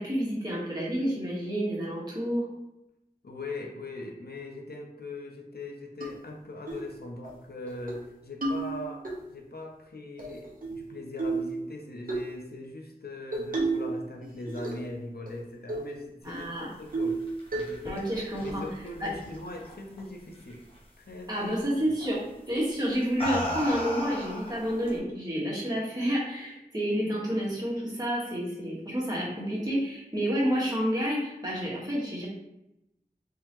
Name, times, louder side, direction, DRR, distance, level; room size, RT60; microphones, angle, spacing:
voice 1, 0.0-2.4 16.2-16.7 17.8-18.6 19.0-19.1 21.3-22.2 22.5-32.3, equal, 25° right, -6 dB, 1.5 m, -29 dB
voice 2, 3.2-17.2 17.5-18.0 18.4-20.6 21.0-21.5, left 2 dB, 80° left, 1 dB, 0.6 m, -41 dB
sound 1, 6.0-6.1 6.7-6.9 7.2-7.3 7.7-8.0 8.4-9.1 10.2-10.8 11.2-11.5 12.1-12.3 13.3-13.9 14.2-14.9 15.3-15.4 15.7-15.9 16.3-16.4 16.9-17.2 17.5-17.9, right 3 dB, 60° right, 0.9 m, -31 dB
sound 2, 17.1-20.0 20.3-20.8 22.0-22.2 22.9-25.0, left 1 dB, 35° left, 1.1 m, -36 dB
3.8 x 3.0 x 3.0 m, 0.88 s
wide cardioid pair, 45°, 16 cm